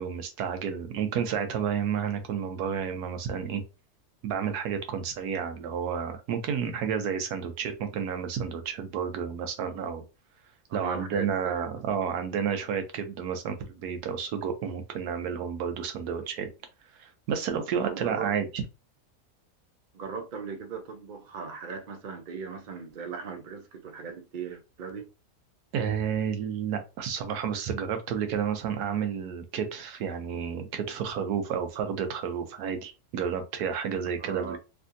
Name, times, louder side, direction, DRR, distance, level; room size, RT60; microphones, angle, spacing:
voice 1, 0.0-3.6 4.2-10.0 10.7-16.5 17.0-18.6 25.7-34.6, right 7 dB, 90° right, 1.2 m, -31 dB
voice 2, 10.7-11.7 17.8-18.3 19.9-25.1 34.2-34.6, right 5 dB, 60° right, 0.5 m, -38 dB
3.3 x 2.6 x 2.5 m
omnidirectional pair, 1.6 m